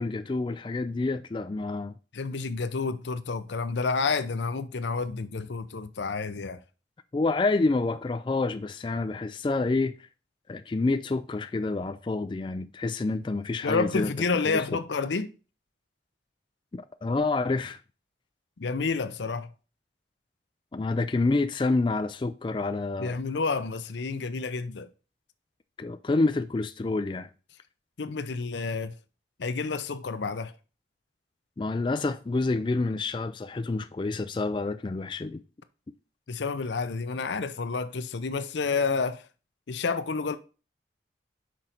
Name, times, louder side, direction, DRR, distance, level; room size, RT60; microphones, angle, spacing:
voice 1, 0.0-1.9 7.1-10.0 10.5-14.1 14.5-14.6 16.7-17.8 20.7-23.2 25.8-27.3 31.6-35.4, left 3 dB, 25° left, 0.3 m, -28 dB
voice 2, 2.1-6.6 13.6-15.3 18.6-19.5 23.0-24.9 28.0-28.9 29.4-30.5 36.3-39.2 39.7-40.4, left 4 dB, 80° left, 0.6 m, -29 dB
6.0 x 5.1 x 4.3 m
head